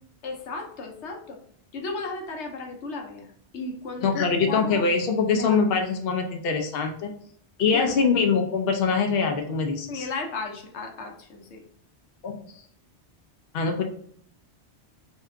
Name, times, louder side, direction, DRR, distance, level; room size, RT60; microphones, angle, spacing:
voice 1, 0.2-1.4 1.7-4.8 5.3-5.6 7.7-7.9 9.9-11.6, left 3 dB, 85° left, 2 dB, 1.0 m, -34 dB
voice 2, 4.0-7.1 7.6-10.1 12.2-12.4 13.5-13.8, left 5 dB, 65° left, 3 dB, 0.8 m, -23 dB
3.3 x 2.8 x 3.5 m, 0.63 s
omnidirectional pair, 1.1 m